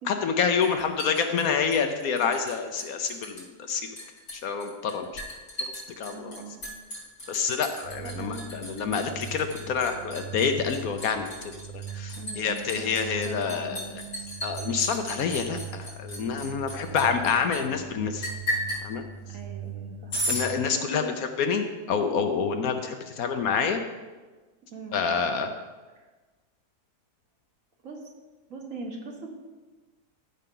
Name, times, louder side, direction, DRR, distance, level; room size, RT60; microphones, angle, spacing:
voice 1, 0.1-3.9 4.3-5.2 5.6-6.3 7.3-13.8 14.4-18.3 18.8-19.0 20.3-23.8 24.9-25.5, left 6 dB, 65° left, 6 dB, 1.0 m, -28 dB
Liquid, 0.6-2.5 2.8-3.4 3.7-17.6 18.2-18.8 20.1-20.5, equal, 85° left, 3.9 m, -35 dB
voice 2, 6.1-6.6 8.0-8.5 12.2-13.8 19.3-20.2 20.7-21.2 24.7-25.3 27.8-28.0 28.5-29.3, right 3 dB, 55° right, 0 dB, 1.6 m, -41 dB
sound 1, 7.8-20.7, right 6 dB, 80° right, 1.4 m, -40 dB
13.5 x 5.5 x 3.8 m, 1.3 s
omnidirectional pair, 1.7 m